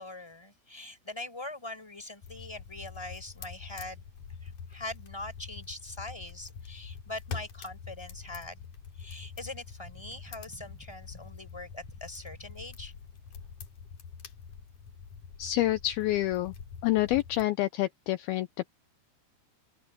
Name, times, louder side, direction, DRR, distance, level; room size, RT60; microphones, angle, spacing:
voice 1, 0.0-4.0 4.4-8.6 9.0-13.0, left 2 dB, 5° left, 4.6 m, -42 dB
sound 1, 2.2-17.5, left 6 dB, 50° left, 3.2 m, -45 dB
voice 2, 15.4-16.5 16.8-18.7, left 16 dB, 80° left, 2.4 m, -28 dB
omnidirectional pair, 4.9 m